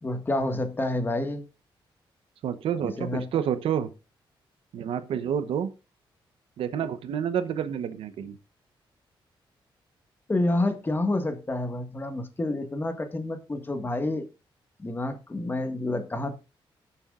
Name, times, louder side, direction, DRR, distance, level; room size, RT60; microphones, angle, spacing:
voice 1, 0.0-1.5 2.8-3.3 10.3-14.3 14.8-16.3, left 2 dB, 25° left, 1.7 m, -28 dB
voice 2, 2.4-3.9 4.7-5.7 6.6-8.4, right 8 dB, 85° right, 0.9 m, -29 dB
18.5 x 7.1 x 2.5 m
cardioid pair, 105°, 9 cm